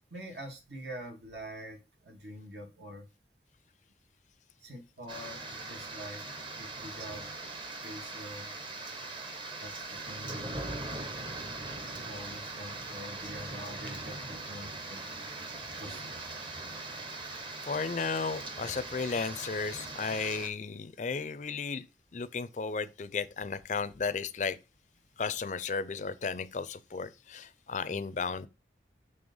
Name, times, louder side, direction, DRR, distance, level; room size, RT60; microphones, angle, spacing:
voice 1, 0.1-1.8 2.0-3.0 4.6-6.2 6.6-7.3 7.8-8.6 9.6-10.9 11.9-15.2 15.8-16.1 27.9-28.0, equal, 80° right, 2.4 m, -45 dB
sound 1, 5.1-20.5, right 2 dB, 30° right, 0.9 m, -41 dB
voice 2, 17.6-21.8 22.1-24.6 25.2-28.5, left 5 dB, 45° left, 0.4 m, -34 dB
7.0 x 3.3 x 5.3 m
head